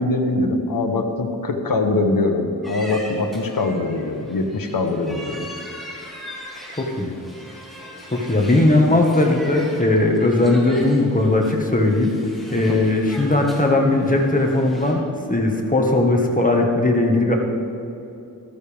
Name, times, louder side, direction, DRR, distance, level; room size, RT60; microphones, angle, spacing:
voice 1, 0.0-5.5, left 2 dB, 70° left, 3 dB, 1.2 m, -22 dB
sound 1, 2.6-14.9, equal, ahead, 2.6 m, -40 dB
voice 2, 6.7-7.1 8.1-12.1 12.5-15.0 15.3-17.3, left 2 dB, 20° left, 1 dB, 1.6 m, -18 dB
14.0 x 13.5 x 3.5 m, 2.8 s
wide cardioid pair, 90°, 36 cm